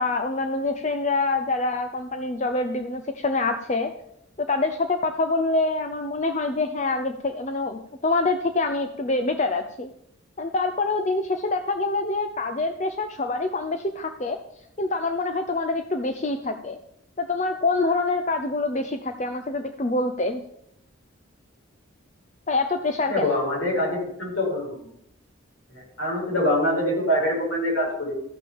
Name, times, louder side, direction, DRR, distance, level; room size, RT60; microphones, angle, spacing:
voice 1, 0.0-3.9 4.4-9.9 10.4-14.4 14.8-16.8 17.2-20.4 22.5-23.4, left 3 dB, 35° left, 7 dB, 0.6 m, -25 dB
voice 2, 23.1-24.9 25.7-28.1, left 1 dB, 75° left, -2 dB, 5.4 m, -25 dB
13.5 x 6.1 x 7.1 m, 0.75 s
head